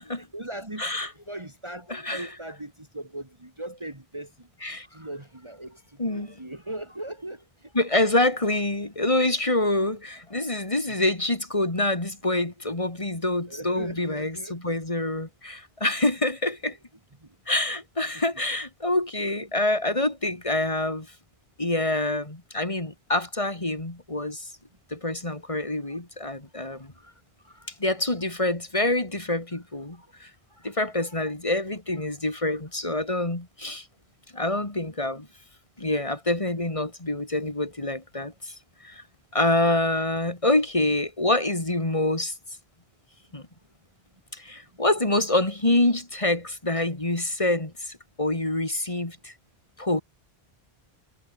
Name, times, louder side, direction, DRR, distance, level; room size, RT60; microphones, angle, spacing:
voice 1, 0.0-0.9 1.3-4.5 4.8-7.7 8.2-8.3 9.8-9.9 10.9-11.0 13.5-14.8 16.7-16.8 18.1-18.4 26.7-27.7 28.1-28.2 29.5-29.6 29.9-30.1 30.5-31.1 32.4-32.6, right 1 dB, 25° right, 3.2 m, -40 dB
voice 2, 1.9-2.3 4.6-4.9 6.0-6.4 7.7-16.8 17.5-21.1 21.6-24.5 24.9-26.9 27.8-30.3 30.6-33.8 34.3-35.3 35.8-38.5 38.8-39.0 39.3-42.3 43.3-43.4 44.3-49.3 49.8-50.0, left 2 dB, 30° left, 2.8 m, -26 dB
omnidirectional pair, 1.1 m